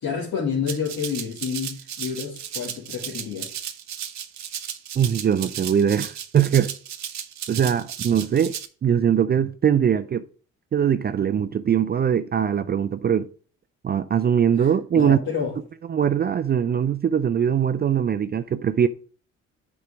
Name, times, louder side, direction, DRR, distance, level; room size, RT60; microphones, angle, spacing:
voice 1, 0.0-3.5 14.6-15.6, left 6 dB, 70° left, 2.2 m, -29 dB
Rattle (instrument), 0.7-8.7, right 9 dB, 65° right, 0.9 m, -35 dB
voice 2, 5.0-6.7 7.5-8.6 8.8-10.2 10.7-13.3 13.8-15.2 15.9-18.9, right 8 dB, 35° right, 0.4 m, -21 dB
6.7 x 4.7 x 4.9 m
cardioid pair, 90°, 30 cm